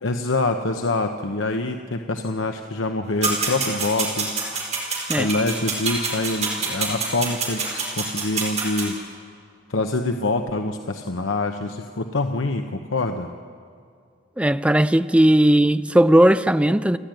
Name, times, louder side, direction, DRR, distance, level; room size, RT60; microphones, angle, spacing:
voice 1, 0.0-4.3 5.1-9.0 9.7-13.3, left 2 dB, 85° left, 1.0 m, -25 dB
sound 1, 3.2-8.9, right 4 dB, 35° right, 4.6 m, -26 dB
voice 2, 14.4-17.0, right 1 dB, 5° right, 0.5 m, -17 dB
29.5 x 12.0 x 9.1 m
head